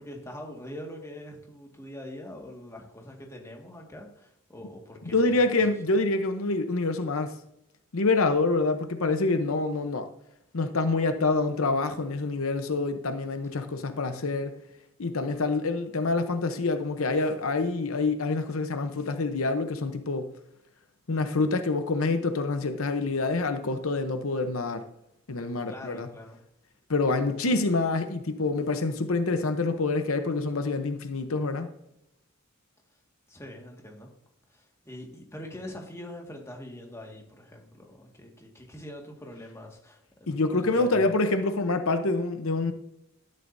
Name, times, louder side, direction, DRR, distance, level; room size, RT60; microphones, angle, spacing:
voice 1, 0.0-5.6 25.7-26.4 33.3-34.1 34.5-41.1, left 1 dB, 15° left, 0 dB, 1.8 m, -43 dB
voice 2, 5.1-7.3 7.9-10.1 10.5-14.5 15.0-20.3 21.1-24.8 25.3-26.1 26.9-31.7 40.3-42.7, left 3 dB, 75° left, 8 dB, 0.8 m, -26 dB
12.5 x 10.0 x 2.7 m, 0.81 s
head